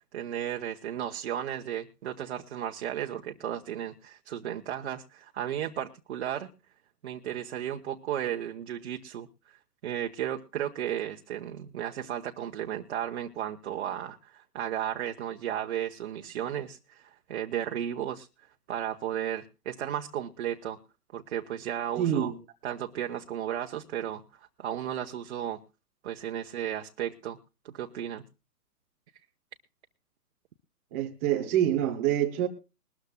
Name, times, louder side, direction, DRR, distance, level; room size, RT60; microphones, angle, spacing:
voice 1, 0.1-6.5 7.0-9.6 9.8-18.3 18.7-20.8 21.1-22.3 22.6-24.2 24.6-25.6 26.0-27.4 27.6-28.2, right 10 dB, 40° right, 1.0 m, -34 dB
voice 2, 22.0-22.3 30.9-32.5, right 11 dB, 10° right, 0.6 m, -26 dB
22.0 x 13.0 x 2.2 m
hypercardioid pair, 150°, 48 cm